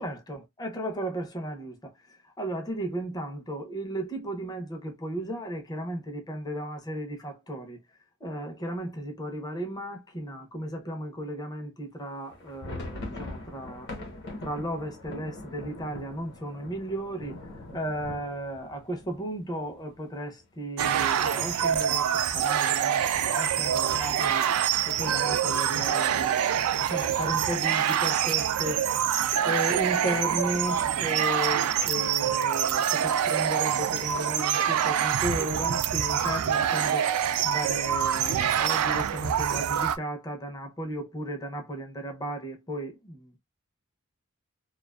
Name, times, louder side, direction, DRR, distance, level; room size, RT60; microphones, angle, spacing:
voice 1, 0.0-7.8 8.2-13.9 14.4-17.4 17.7-24.5 24.9-29.1 29.4-43.4, right 1 dB, 20° left, 0.5 m, -35 dB
sound 1, 12.3-20.0 20.3-20.4 20.7-20.9 21.4-21.9, left 2 dB, 50° left, 0.9 m, -42 dB
sound 2, 20.8-40.0, right 9 dB, 85° right, 0.3 m, -26 dB
2.4 x 2.3 x 2.2 m
head